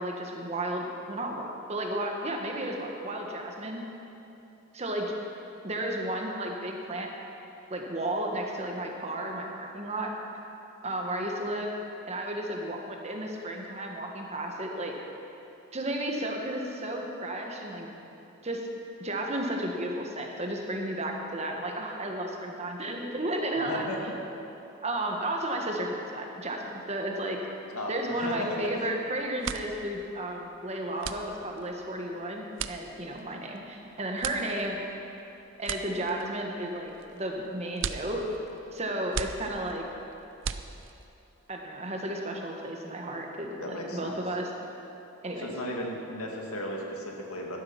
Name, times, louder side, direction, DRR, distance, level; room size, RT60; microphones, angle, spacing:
voice 1, 0.0-3.9 4.7-5.1 5.6-7.1 7.7-10.1 10.8-11.7 12.1-14.9 15.7-17.9 18.4-18.7 19.0-23.9 24.8-27.4 27.9-34.8 35.6-38.2 38.7-39.8 41.5-44.5 45.2-45.5, right 1 dB, 30° right, 1 dB, 1.4 m, -33 dB
voice 2, 23.6-24.0 27.7-28.6 43.6-44.2 45.4-47.6, left 1 dB, 90° left, 0 dB, 2.1 m, -35 dB
sound 1, 28.7-29.0 29.3-41.2, right 7 dB, 60° right, 0.5 m, -39 dB
13.0 x 11.5 x 5.9 m, 3.0 s
head